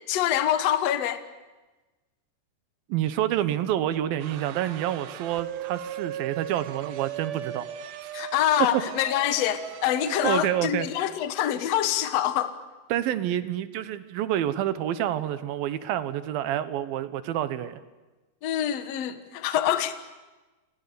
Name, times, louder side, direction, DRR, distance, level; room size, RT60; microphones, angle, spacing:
voice 1, 0.1-1.2 8.1-12.6 18.4-19.9, left 11 dB, 60° left, 10 dB, 1.7 m, -25 dB
voice 2, 2.9-7.7 8.1-8.2 8.7-8.8 10.1-10.9 12.9-17.8, right 12 dB, 70° right, 13 dB, 2.6 m, -28 dB
sound 1, 4.2-10.4, right 10 dB, 85° right, 3.3 m, -37 dB
28.5 x 27.5 x 6.9 m, 1.2 s
omnidirectional pair, 4.8 m